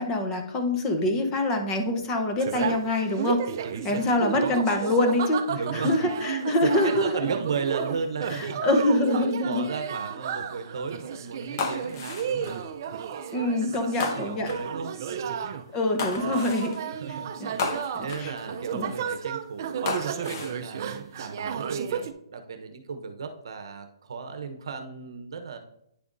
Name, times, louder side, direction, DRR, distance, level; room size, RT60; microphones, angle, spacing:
voice 1, 0.0-3.4 3.8-5.4 5.7-7.1 8.3-9.7 13.3-14.5 15.7-16.8 17.4-17.6 17.9-18.3 18.7-18.9, left 1 dB, 15° left, 5 dB, 0.8 m, -25 dB
sound 1, 2.4-22.1, right 7 dB, 40° right, 0.5 m, -33 dB
voice 2, 3.6-4.4 5.5-6.0 6.3-12.4 12.9-13.0 13.4-15.5 16.2-16.6 16.9-25.6, right 5 dB, 65° right, 7 dB, 0.8 m, -36 dB
sound 2, 11.6-12.7 14.0-14.7 16.0-16.8 17.6-18.4 19.8-20.6 21.3-21.7, left 4 dB, 40° left, 1.0 m, -33 dB
9.4 x 6.9 x 2.6 m, 0.78 s
hypercardioid pair, 165°, 3 cm